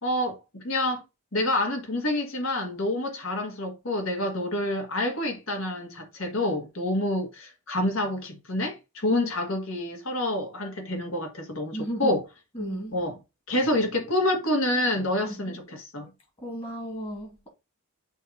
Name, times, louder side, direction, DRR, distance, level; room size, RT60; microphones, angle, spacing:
voice 1, 0.0-1.0 1.3-12.2 12.9-13.2 13.5-16.1, left 1 dB, 60° left, 1.8 m, -28 dB
voice 2, 11.7-12.2 12.5-13.0 15.2-15.4 16.4-17.5, equal, 25° left, 2.6 m, -33 dB
7.2 x 2.9 x 5.3 m
head